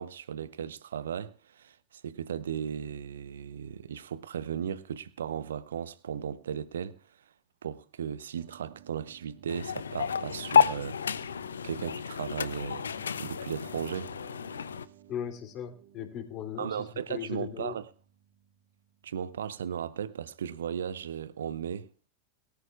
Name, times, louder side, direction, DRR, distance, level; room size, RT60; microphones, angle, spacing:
voice 1, 0.0-7.0 7.6-11.3 11.6-14.1 16.6-17.9 19.0-21.9, right 8 dB, 65° right, 0.8 m, -36 dB
sound 1, 8.4-19.6, right 10 dB, 45° right, 2.1 m, -56 dB
sound 2, 9.5-14.8, left 7 dB, 70° left, 0.5 m, -30 dB
voice 2, 15.1-17.8, left 9 dB, 35° left, 3.0 m, -38 dB
22.5 x 13.0 x 2.4 m
figure-of-eight pair, 90°, 0 cm